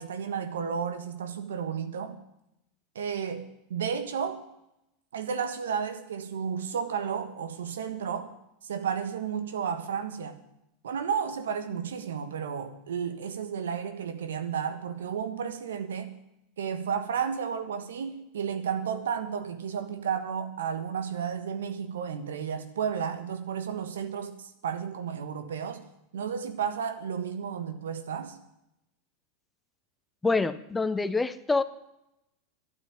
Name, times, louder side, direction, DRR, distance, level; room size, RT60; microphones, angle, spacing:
voice 1, 0.0-2.2 2.9-4.4 5.1-8.3 8.6-10.4 10.8-16.2 16.6-25.8 26.1-28.4, right 7 dB, 85° right, 9 dB, 1.5 m, -32 dB
voice 2, 30.2-31.6, left 3 dB, 15° left, 14 dB, 0.8 m, -26 dB
12.0 x 9.1 x 8.8 m, 0.84 s
hypercardioid pair, 100°, 0 cm